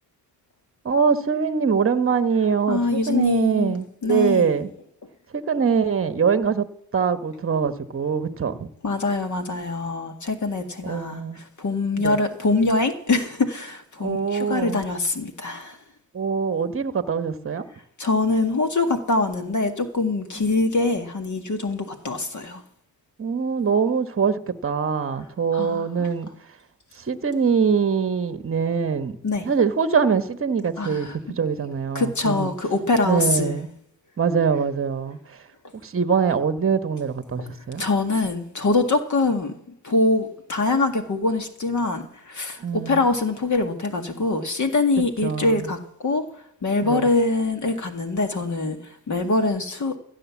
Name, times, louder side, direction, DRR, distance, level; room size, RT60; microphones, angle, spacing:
voice 1, 0.8-4.7 5.3-6.7 6.9-8.7 10.8-11.4 12.0-12.2 14.0-14.8 16.1-17.7 23.2-26.3 27.0-29.2 29.4-31.1 31.4-32.5 33.0-33.7 34.2-35.4 35.7-37.8 42.6-43.0 45.2-45.7 46.8-47.1, right 6 dB, 30° right, 11 dB, 1.1 m, -23 dB
voice 2, 2.7-4.5 8.8-15.8 18.0-22.6 25.5-26.1 29.2-29.4 30.8-31.2 31.9-33.5 37.4-37.5 37.8-39.5 39.8-46.2 46.6-48.8 49.1-50.0, left 3 dB, 45° left, 6 dB, 2.1 m, -24 dB
15.5 x 6.7 x 7.2 m, 0.76 s
supercardioid pair, 65°, 42 cm